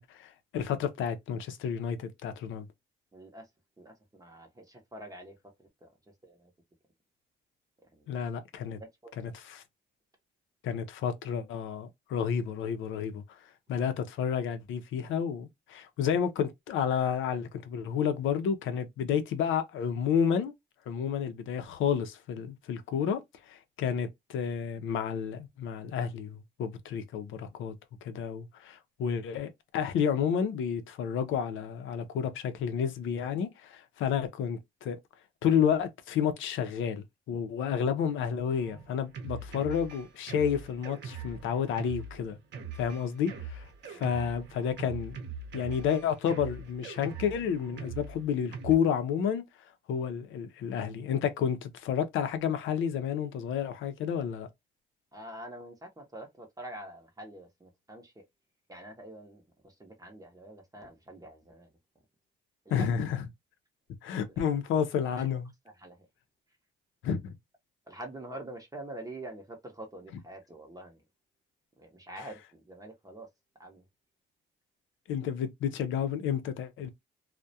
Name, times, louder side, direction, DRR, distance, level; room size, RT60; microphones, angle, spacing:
voice 1, 0.0-2.7 8.1-8.8 9.2-9.6 10.6-13.2 13.7-20.5 20.9-27.7 28.0-35.0 35.4-42.4 42.8-45.2 45.5-49.4 49.9-54.5 62.7-63.3 64.0-65.5 67.0-67.3 75.1-76.9, left 8 dB, 80° left, 0.5 m, -30 dB
voice 2, 3.1-3.5 3.8-5.9 6.2-6.5 7.9-8.2 8.8-9.1 37.7-37.9 43.9-44.0 55.1-58.2 58.7-61.7 62.6-62.9 64.3-64.4 64.7-65.3 65.7-66.1 67.9-71.0 71.8-73.3 73.6-73.9, right 1 dB, 20° right, 0.7 m, -46 dB
Drum kit, 38.5-48.7, right 5 dB, 65° right, 0.7 m, -42 dB
2.3 x 2.1 x 2.6 m
cardioid pair, 90°, 20 cm